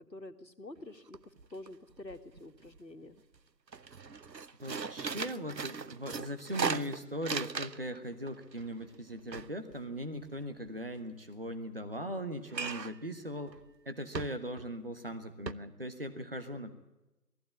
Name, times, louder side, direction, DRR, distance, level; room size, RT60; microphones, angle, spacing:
voice 1, 0.0-3.2, left 1 dB, 85° left, 6 dB, 2.1 m, -48 dB
sound 1, 0.8-0.9 1.1-1.7 2.0-2.8 3.2-3.4 3.7-8.0 8.3-10.7 12.5-13.1 13.5-13.6 14.1-14.7 15.1-15.2 15.5-15.6, right 5 dB, 80° right, 0.9 m, -38 dB
voice 2, 4.6-13.6 13.8-16.7, equal, 35° right, 8 dB, 1.3 m, -39 dB
20.5 x 15.0 x 8.7 m, 0.99 s
figure-of-eight pair, 170°, 50 cm